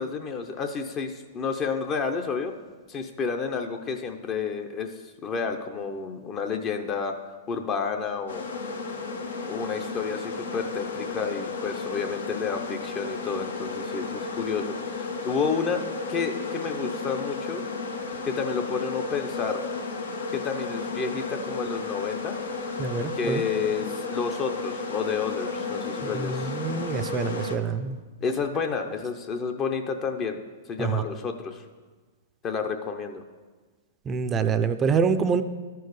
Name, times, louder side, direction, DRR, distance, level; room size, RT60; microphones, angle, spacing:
voice 1, 0.0-2.5 2.9-4.9 5.2-7.1 7.5-8.4 9.5-15.8 16.1-17.6 18.3-19.7 20.3-22.4 23.1-26.5 28.2-30.4 30.7-31.6 32.4-33.2, left 5 dB, 25° left, 6 dB, 0.6 m, -30 dB
sound 1, 8.3-27.6, left 4 dB, 85° left, 1.0 m, -33 dB
voice 2, 22.8-23.4 26.1-28.0 30.8-31.0 34.1-35.4, right 6 dB, 20° right, 11 dB, 0.4 m, -26 dB
12.5 x 4.6 x 4.7 m, 1.4 s
hypercardioid pair, 140°, 0 cm